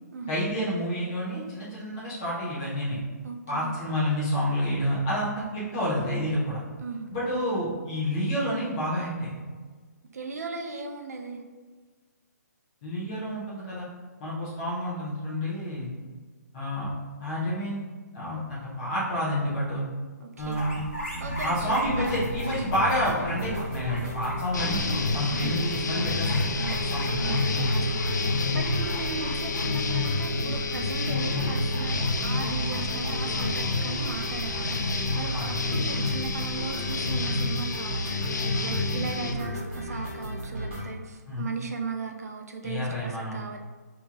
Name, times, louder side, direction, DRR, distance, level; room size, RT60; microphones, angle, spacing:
voice 1, 0.3-3.0 3.5-6.6 7.1-9.3 12.8-13.9 14.2-15.9 16.5-16.9 17.2-17.8 18.1-19.8 20.4-20.9 21.4-24.8 25.1-27.4 35.3-35.5 41.3-41.5 42.6-43.4, equal, 20° left, -9 dB, 0.6 m, -29 dB
voice 2, 3.2-3.8 5.4-5.5 6.8-7.1 10.1-11.4 20.2-20.6 21.2-22.2 25.3-25.7 26.6-28.2 28.5-43.6, right 4 dB, 60° right, 3 dB, 0.5 m, -37 dB
sound 1, 20.4-37.2, left 1 dB, 40° left, 1.1 m, -41 dB
sound 2, 21.1-40.8, equal, 40° right, 1.3 m, -34 dB
sound 3, 24.5-39.3, left 3 dB, 85° left, 0.5 m, -29 dB
5.3 x 2.9 x 2.4 m, 1.4 s
hypercardioid pair, 175°, 10 cm